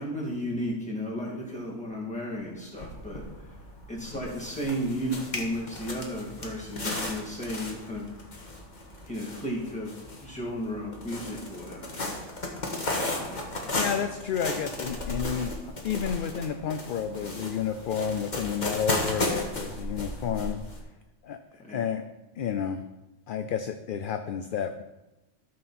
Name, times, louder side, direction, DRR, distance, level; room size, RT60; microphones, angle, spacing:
voice 1, 0.0-3.5 3.9-8.1 9.0-9.9 10.2-12.0 13.1-13.5 21.6-21.9, equal, 5° left, -4 dB, 2.4 m, -34 dB
sound 1, 2.4-2.5 2.8-20.8, left 2 dB, 40° left, 1.6 m, -35 dB
voice 2, 13.8-20.6 21.2-21.4 21.7-22.0 22.4-22.8 23.3-24.8, left 7 dB, 55° left, 8 dB, 0.6 m, -31 dB
12.5 x 6.6 x 4.3 m, 1.0 s
omnidirectional pair, 1.3 m